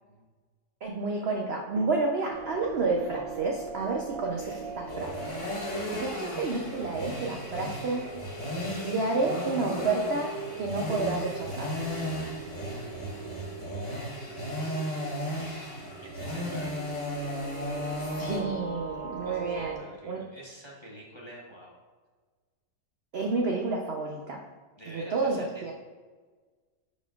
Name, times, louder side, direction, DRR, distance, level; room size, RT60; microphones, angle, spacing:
voice 1, 0.8-5.3 5.9-8.1 8.8-11.7 18.0-20.2 23.1-24.5 24.9-25.7, right 3 dB, 65° right, 0 dB, 0.6 m, -30 dB
sound 1, 2.3-19.8, right 5 dB, 80° right, 1.4 m, -41 dB
sound 2, 4.3-18.4, left 1 dB, 50° left, 2.4 m, -35 dB
voice 2, 16.0-17.0 19.2-21.8 24.8-25.7, equal, 20° left, -4 dB, 0.8 m, -47 dB
11.0 x 4.3 x 2.4 m, 1.4 s
omnidirectional pair, 1.8 m